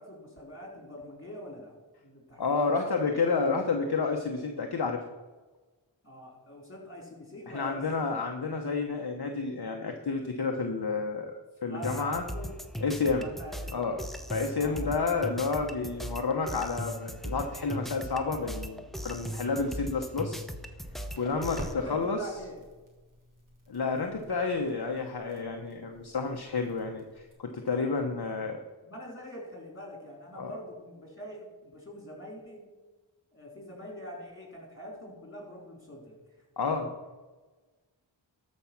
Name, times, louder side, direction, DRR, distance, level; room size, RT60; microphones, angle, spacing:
voice 1, 0.0-1.8 2.0-3.0 6.0-8.1 11.7-12.6 13.1-14.0 14.6-14.8 21.7-22.6 23.8-24.1 27.7-27.9 28.8-32.7 33.3-36.2, equal, 25° left, -1 dB, 3.9 m, -44 dB
voice 2, 2.4-5.0 7.5-12.2 12.8-13.3 13.7-14.0 14.3-20.4 21.2-22.2 23.7-28.6 30.3-30.5 36.6-36.9, left 4 dB, 55° left, 3 dB, 1.0 m, -30 dB
sound 1, 11.8-21.7, equal, ahead, 0.9 m, -39 dB
Crackle, 20.8-27.3, equal, 40° right, 3.2 m, -49 dB
13.0 x 5.4 x 6.0 m, 1.2 s
wide cardioid pair, 45°, 47 cm